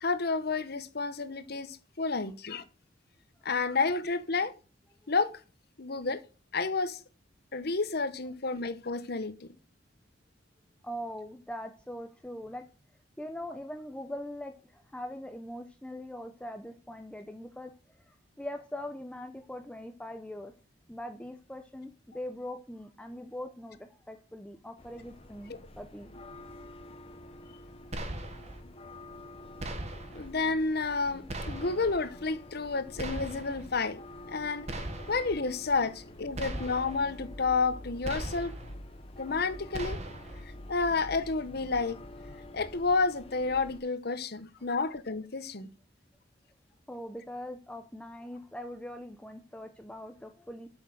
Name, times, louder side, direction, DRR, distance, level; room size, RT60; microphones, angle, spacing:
voice 1, 0.0-2.6 3.4-4.5 5.1-5.3 5.8-6.2 6.5-7.0 7.5-9.5 30.1-34.0 34.3-34.7 35.1-38.5 39.2-40.0 40.7-42.0 42.5-45.7, left 4 dB, 60° left, 1.0 m, -30 dB
voice 2, 10.8-12.6 13.2-20.5 20.9-26.1 28.5-28.6 46.9-50.7, left 1 dB, 5° left, 0.7 m, -42 dB
sound 1, 24.8-43.8, left 1 dB, 30° left, 1.2 m, -47 dB
sound 2, 27.9-28.6 29.6-30.3 31.3-32.0 33.0-33.7 34.7-35.4 36.3-37.0 38.0-38.7 39.7-40.4, right 1 dB, 35° right, 1.3 m, -39 dB
8.3 x 6.4 x 6.4 m
head